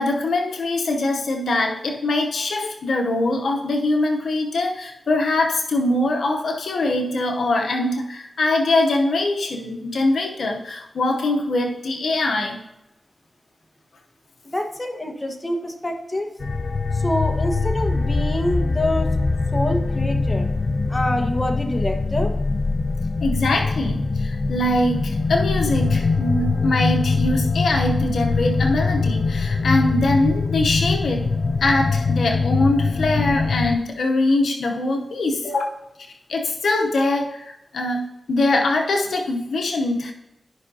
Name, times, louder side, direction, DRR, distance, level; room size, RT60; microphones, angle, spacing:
voice 1, 0.0-12.6 23.2-31.3 31.6-35.6 36.3-38.0 38.3-40.1, left 2 dB, 85° left, 2 dB, 0.8 m, -22 dB
voice 2, 14.5-16.3 16.9-19.1 19.5-20.5 20.9-22.3, left 1 dB, 25° left, 4 dB, 1.3 m, -26 dB
sound 1, 16.4-33.8, left 3 dB, 60° left, 0.4 m, -22 dB
13.0 x 5.5 x 2.8 m, 0.90 s
cardioid pair, 55°, 0 cm